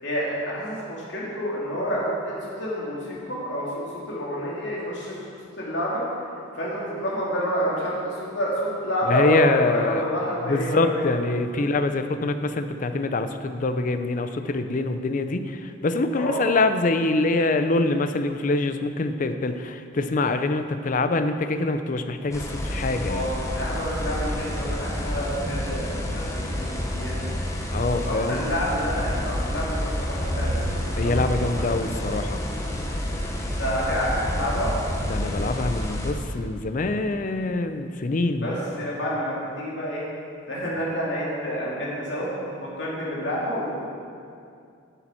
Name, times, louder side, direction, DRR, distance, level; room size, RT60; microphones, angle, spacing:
voice 1, 0.0-5.2 5.6-6.0 6.5-11.1 16.1-16.4 23.1-27.1 27.6-27.7 27.9-31.7 33.4-34.7 38.4-40.0 40.5-42.3 42.6-43.9, equal, 65° left, -6 dB, 2.5 m, -29 dB
voice 2, 9.1-10.0 10.5-23.3 27.7-28.4 31.0-32.4 35.1-38.6, left 3 dB, 40° left, 9 dB, 0.4 m, -25 dB
sound 1, 22.3-36.1, equal, 15° left, 0.8 m, -29 dB
8.6 x 7.0 x 5.6 m, 2.4 s
head